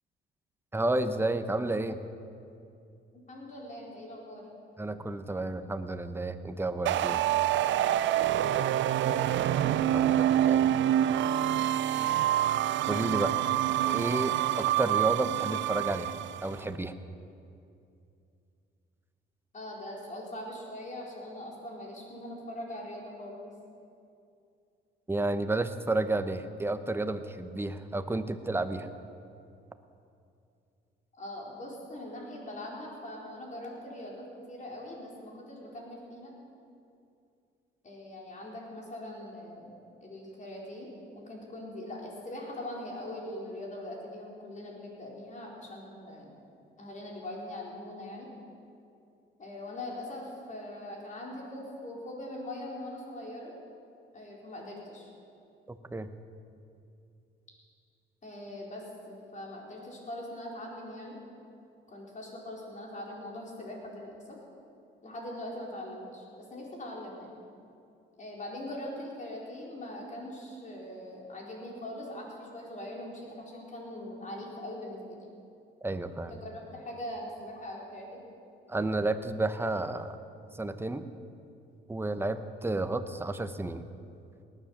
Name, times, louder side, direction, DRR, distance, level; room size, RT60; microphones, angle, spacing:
voice 1, 0.7-2.0 4.8-7.2 9.9-10.6 12.9-13.4 13.8-16.1 16.4-16.9 25.1-28.9 55.7-56.1 75.8-76.4 78.7-80.2 80.5-81.0 81.9-83.9, right 2 dB, 10° right, 9 dB, 0.9 m, -31 dB
voice 2, 3.3-4.4 8.8-9.4 19.5-23.5 31.1-36.3 37.8-46.3 46.8-48.3 49.4-53.6 54.1-55.1 58.2-61.2 61.9-64.4 65.0-66.2 66.5-67.4 68.2-75.2 76.3-78.2, left 1 dB, 40° left, -2 dB, 4.4 m, -42 dB
sound 1, 6.9-16.5, right 12 dB, 70° right, 0.5 m, -26 dB
18.5 x 10.0 x 7.3 m, 2.6 s
cardioid pair, 90°, 20 cm